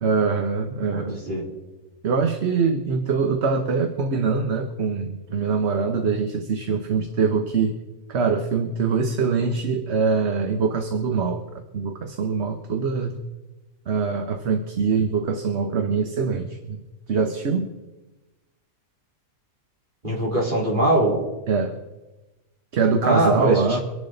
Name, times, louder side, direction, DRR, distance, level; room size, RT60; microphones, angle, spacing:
voice 1, 0.0-1.2 2.0-7.7 8.1-13.2 13.9-16.8 17.1-17.7 21.5-21.7 22.7-23.8, right 5 dB, 50° right, 5 dB, 1.2 m, -23 dB
voice 2, 0.9-1.4 20.0-21.2 23.0-23.6, right 1 dB, 35° right, -4 dB, 4.2 m, -22 dB
25.0 x 11.0 x 3.9 m, 1.1 s
omnidirectional pair, 1.5 m